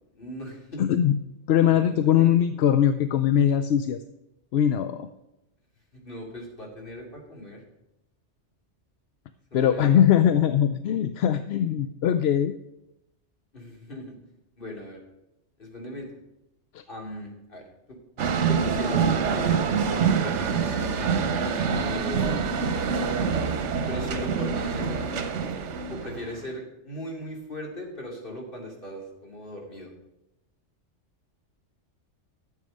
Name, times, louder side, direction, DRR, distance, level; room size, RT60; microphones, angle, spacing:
voice 1, 0.1-0.8 1.6-2.3 5.9-7.6 9.5-10.2 13.5-14.1 14.6-15.0 15.6-16.2 16.9-18.0 18.5-21.1 21.8-22.9 23.9-25.2 25.9-29.9, equal, 45° left, -1 dB, 3.0 m, -39 dB
voice 2, 0.8-1.2 1.5-4.0 4.5-5.1 9.5-12.5, left 10 dB, 65° left, 10 dB, 0.8 m, -21 dB
sound 1, 18.2-26.5, right 6 dB, 75° right, 1.1 m, -26 dB
12.5 x 7.5 x 5.3 m, 0.89 s
omnidirectional pair, 1.2 m